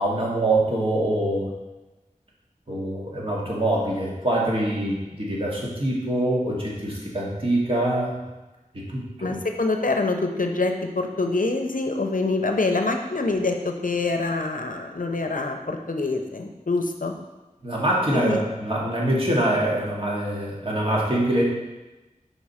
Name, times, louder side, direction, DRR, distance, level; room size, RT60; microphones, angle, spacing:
voice 1, 0.0-1.5 2.7-8.1 8.7-9.4 17.6-21.4, right 1 dB, 40° right, -5 dB, 1.8 m, -24 dB
voice 2, 9.2-17.1 18.1-18.4, left 3 dB, 75° left, 4 dB, 0.6 m, -25 dB
5.3 x 4.9 x 4.2 m, 1.1 s
wide cardioid pair, 45°, 14 cm